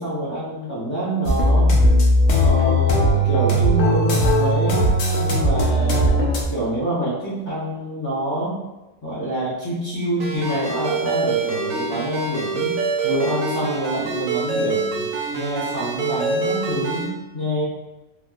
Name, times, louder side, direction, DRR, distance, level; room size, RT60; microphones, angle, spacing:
voice 1, 0.0-1.7 2.4-4.8 5.2-6.2 6.5-8.5 9.0-12.7 13.0-17.6, right 1 dB, 20° left, -12 dB, 0.5 m, -26 dB
sound 1, 1.3-6.4, equal, 70° left, 0.9 m, -18 dB
Ringtone, 10.2-17.1, right 4 dB, 75° right, 1.2 m, -25 dB
3.5 x 2.6 x 2.3 m, 1.1 s
omnidirectional pair, 1.5 m